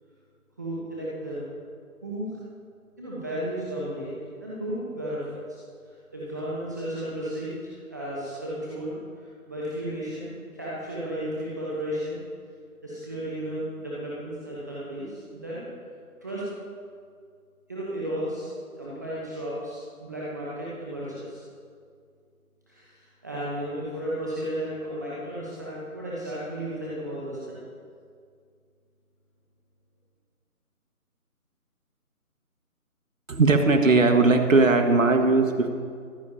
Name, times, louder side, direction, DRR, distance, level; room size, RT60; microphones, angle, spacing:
voice 1, 0.6-1.5 2.0-2.4 3.0-4.1 4.4-12.2 12.8-15.6 16.2-16.4 17.7-18.5 18.8-21.4 22.7-27.6, right 1 dB, 10° right, -8 dB, 1.0 m, -34 dB
voice 2, 33.3-35.7, right 3 dB, 60° right, 5 dB, 1.7 m, -19 dB
23.5 x 12.0 x 2.9 m, 2.1 s
figure-of-eight pair, 160°, 44 cm